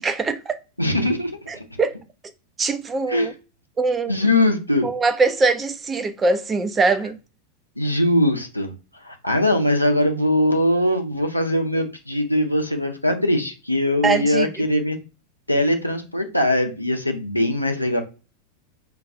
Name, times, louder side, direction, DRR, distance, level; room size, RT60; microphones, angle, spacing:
voice 1, 0.0-0.6 1.5-2.0 2.6-3.3 3.8-4.1 4.8-7.2 14.0-14.5, right 3 dB, 20° right, 0.4 m, -22 dB
voice 2, 0.8-1.6 3.1-3.3 4.1-4.9 7.8-8.7 9.0-15.0 15.5-18.0, left 1 dB, 85° left, 0.6 m, -21 dB
4.5 x 2.3 x 2.6 m
figure-of-eight pair, 90°, 0 cm